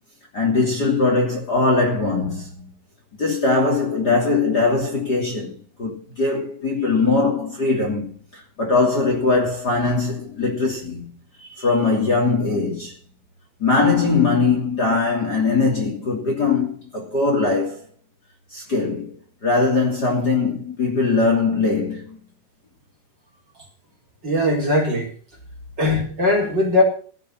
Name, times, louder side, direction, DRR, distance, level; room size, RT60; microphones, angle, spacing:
voice 1, 0.3-2.7 3.2-5.5 5.8-11.1 11.4-12.9 13.6-17.8 18.5-19.1 19.4-22.2, left 3 dB, 30° left, 3.1 m, -21 dB
voice 2, 24.2-25.1 25.8-26.8, left 2 dB, 30° right, 4.5 m, -19 dB
15.5 x 7.9 x 7.5 m
omnidirectional pair, 3.9 m